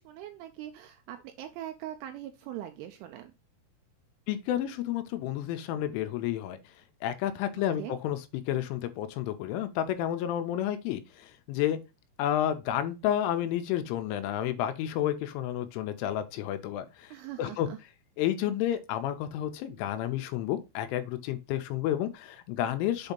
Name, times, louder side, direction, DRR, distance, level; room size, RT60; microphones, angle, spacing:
voice 1, 0.0-3.3 7.5-8.0 17.1-17.8, right 12 dB, 85° right, 2.8 m, -42 dB
voice 2, 4.3-6.6 7.0-8.2 8.5-11.8 12.2-17.1 17.4-17.7 18.2-23.1, left 11 dB, 80° left, 2.9 m, -30 dB
8.0 x 2.8 x 5.1 m
omnidirectional pair, 6.0 m